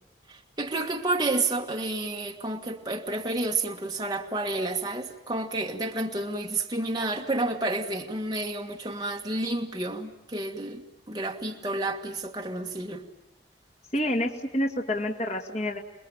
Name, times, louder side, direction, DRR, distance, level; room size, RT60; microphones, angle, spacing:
voice 1, 0.3-13.0, right 2 dB, 25° right, 1 dB, 1.8 m, -30 dB
voice 2, 13.9-15.8, left 1 dB, 40° left, 2 dB, 2.3 m, -28 dB
29.0 x 20.5 x 9.0 m, 0.89 s
head